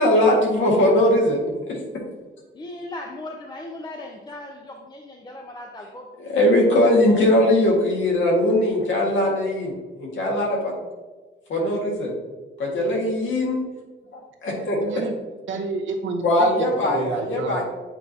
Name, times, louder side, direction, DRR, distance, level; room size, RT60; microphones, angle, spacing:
voice 1, 0.0-1.4 1.7-1.8 6.2-9.7 10.0-10.7 11.5-12.1 12.6-13.6 14.1-14.8 16.2-17.6, left 1 dB, 85° left, -2 dB, 1.8 m, -20 dB
voice 2, 2.5-6.1, left 2 dB, 20° left, 2 dB, 0.4 m, -37 dB
voice 3, 14.8-15.1 15.5-16.2 16.8-17.6, right 3 dB, 85° right, 4 dB, 0.9 m, -29 dB
8.1 x 4.5 x 2.8 m, 1.3 s
wide cardioid pair, 170°, 19 cm